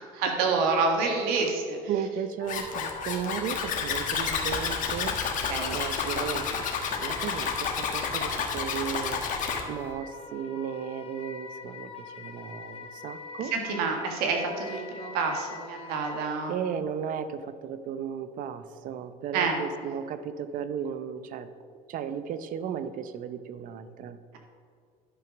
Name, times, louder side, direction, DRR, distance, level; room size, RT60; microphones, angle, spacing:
voice 1, 0.0-1.8 5.5-5.7 13.5-16.5 19.3-19.6, right 4 dB, 85° right, 2 dB, 1.8 m, -28 dB
voice 2, 1.9-5.2 5.7-6.7 7.0-9.2 9.7-13.8 16.5-21.5 21.9-24.2, right 8 dB, 60° right, 12 dB, 0.7 m, -35 dB
Wind instrument woodwind instrument, 2.4-16.2, left 5 dB, 40° left, 1.2 m, -44 dB
Zipper (clothing), 2.5-9.6, left 6 dB, 55° left, 1.6 m, -30 dB
11.0 x 6.0 x 6.0 m, 2.2 s
cardioid pair, 105°, 16 cm